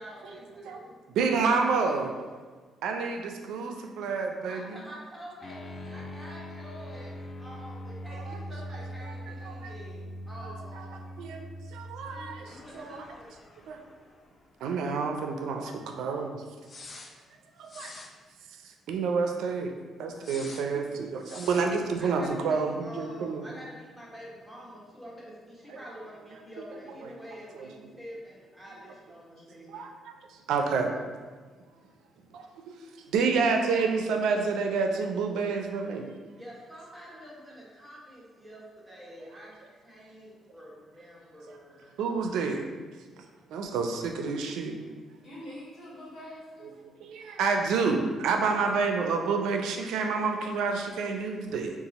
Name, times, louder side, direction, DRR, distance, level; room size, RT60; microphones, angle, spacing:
voice 1, 0.0-1.0 1.8-2.2 4.4-11.1 12.0-13.5 20.9-21.0 22.0-30.3 36.4-42.0, equal, ahead, -6 dB, 1.1 m, -47 dB
voice 2, 1.1-2.1 2.8-4.8 8.1-8.4 9.4-9.7 10.4-10.8 11.2-12.4 12.7-13.0 13.7-13.8 14.6-16.4 17.6-17.9 18.9-19.7 20.0-23.4 25.7-25.8 27.6-27.7 29.7-30.1 30.5-30.9 32.3-36.1 42.0-42.6 43.5-44.7 47.0-51.7, right 4 dB, 85° right, 3 dB, 0.4 m, -29 dB
sound 1, 5.4-14.6 14.9-15.0 16.6-17.1 17.6-18.1 20.2-20.7 21.2-21.7, left 1 dB, 40° left, 0.4 m, -42 dB
voice 3, 19.8-20.2 45.2-46.7 48.5-48.8, left 1 dB, 60° left, -8 dB, 1.4 m, -45 dB
2.8 x 2.4 x 3.9 m, 1.5 s
cardioid pair, 90°, 0 cm